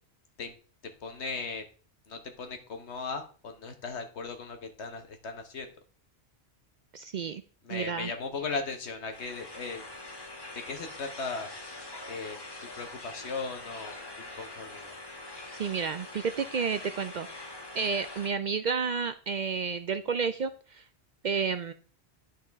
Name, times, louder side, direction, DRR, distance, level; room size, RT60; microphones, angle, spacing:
voice 1, 1.0-1.6 2.1-5.7 7.6-9.8 10.5-11.5 12.1-14.9, left 4 dB, 85° left, 5 dB, 1.5 m, -37 dB
voice 2, 6.9-7.4 7.7-8.1 15.5-20.9 21.2-21.7, right 5 dB, 55° right, 11 dB, 0.5 m, -31 dB
sound 1, 9.1-18.3, left 2 dB, 25° left, 1.2 m, -44 dB
10.5 x 5.7 x 3.5 m, 0.39 s
omnidirectional pair, 1.1 m